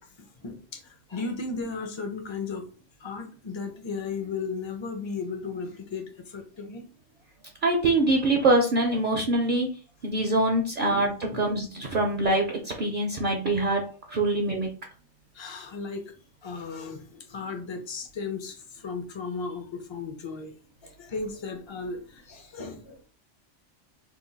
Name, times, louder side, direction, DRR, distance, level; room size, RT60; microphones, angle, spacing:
voice 1, 0.2-2.6 3.0-6.9 10.9-11.5 15.3-16.1 16.4-20.5 20.8-23.0, left 4 dB, 35° left, 5 dB, 0.4 m, -35 dB
voice 2, 7.6-9.7 10.0-13.8 14.1-14.7, right 2 dB, 55° right, 2 dB, 0.6 m, -24 dB
2.9 x 2.2 x 3.8 m, 0.38 s
omnidirectional pair, 1.3 m